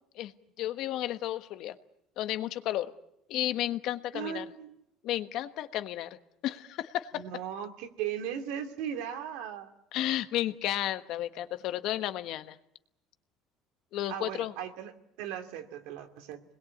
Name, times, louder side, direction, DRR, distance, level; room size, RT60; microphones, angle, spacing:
voice 1, 0.6-1.7 2.2-2.9 3.3-4.5 5.0-6.2 6.4-7.2 9.9-12.6 13.9-14.5, left 13 dB, 55° left, 11 dB, 1.3 m, -32 dB
voice 2, 4.1-4.7 7.1-9.7 14.1-16.4, right 9 dB, 80° right, 6 dB, 2.7 m, -37 dB
26.5 x 21.0 x 8.6 m, 0.80 s
cardioid pair, 165°, 0 cm